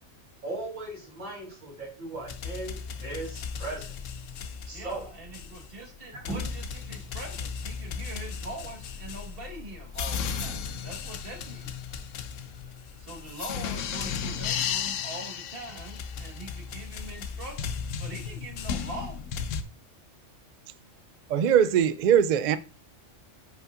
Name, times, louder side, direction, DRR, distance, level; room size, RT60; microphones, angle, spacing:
voice 1, 0.4-3.9 4.7-5.0 6.1-6.4, right 2 dB, 90° right, 4.0 m, -37 dB
sound 1, 2.1-19.6, left 7 dB, 80° left, 1.0 m, -35 dB
voice 2, 4.7-11.7 13.0-19.2, right 2 dB, 50° right, 1.7 m, -43 dB
voice 3, 21.3-22.6, right 9 dB, 70° right, 0.4 m, -21 dB
9.2 x 5.4 x 2.5 m
omnidirectional pair, 1.3 m